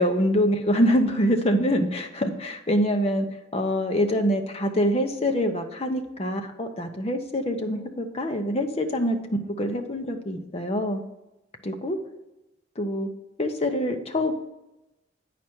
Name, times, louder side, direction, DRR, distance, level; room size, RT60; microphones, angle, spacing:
voice 1, 0.0-3.3 3.5-9.2 9.6-11.0 11.6-12.0 12.8-13.1 13.4-14.3, equal, 35° left, 5 dB, 0.8 m, -25 dB
8.9 x 5.1 x 4.5 m, 0.97 s
head